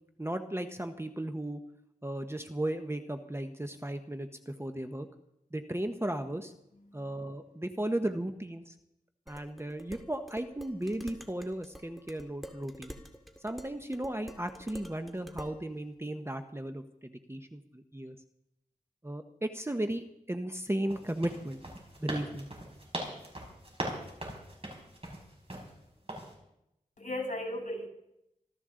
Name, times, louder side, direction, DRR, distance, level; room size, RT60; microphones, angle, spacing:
voice 1, 0.2-1.6 2.0-5.1 5.5-6.5 6.9-8.7 9.3-12.9 13.4-18.2 19.0-21.6 22.0-22.5, right 1 dB, 15° right, 7 dB, 0.9 m, -35 dB
voice 2, 6.9-7.2 27.0-27.9, left 1 dB, 55° left, 0 dB, 8.0 m, -37 dB
Dishes pots and pans, 9.3-15.6, equal, ahead, 2.1 m, -48 dB
sound 1, 20.9-25.7 26.1-26.3, right 1 dB, 40° right, 5.7 m, -40 dB
26.0 x 13.5 x 3.8 m, 0.85 s
wide cardioid pair, 60°, 15 cm